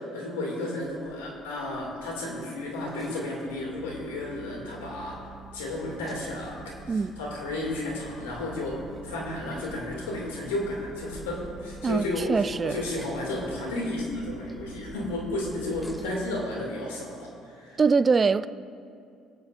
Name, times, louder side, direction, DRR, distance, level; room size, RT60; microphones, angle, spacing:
voice 1, 0.0-5.2 5.5-17.8, left 1 dB, 85° left, 2.4 m, -33 dB
sound 1, 0.8-16.1, left 1 dB, 15° left, 2.4 m, -49 dB
sound 2, 3.5-17.0, right 5 dB, 70° right, 0.9 m, -48 dB
voice 2, 11.8-12.8 17.8-18.5, right 5 dB, 35° right, 0.4 m, -23 dB
23.0 x 8.6 x 2.6 m
hypercardioid pair, 55°, 0 cm